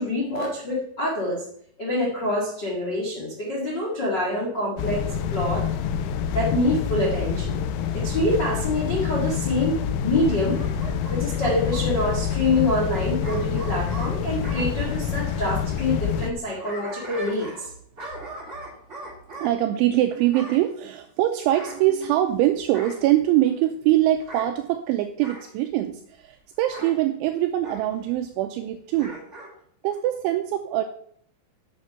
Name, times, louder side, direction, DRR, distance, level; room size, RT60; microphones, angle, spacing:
voice 1, 0.0-1.4 1.8-5.0 5.3-5.6 6.3-7.6 7.9-9.7 10.0-10.6 11.1-17.7, left 1 dB, 60° left, -4 dB, 1.1 m, -26 dB
sound 1, 4.8-16.3, left 7 dB, 85° left, 3.1 m, -27 dB
Bark / Growling, 10.5-12.1 13.2-14.7 16.3-17.7 18.0-19.5 20.3-20.6 21.5-22.3 22.7-23.1 24.2-24.5 25.2-25.5 26.7-27.0 27.6-27.8 28.9-29.5 29.9-30.0, right 1 dB, 30° right, 1.3 m, -39 dB
voice 2, 18.1-18.5 19.4-29.2 29.8-30.9, right 13 dB, 85° right, 7 dB, 2.7 m, -23 dB
8.5 x 7.2 x 5.7 m, 0.65 s
omnidirectional pair, 5.9 m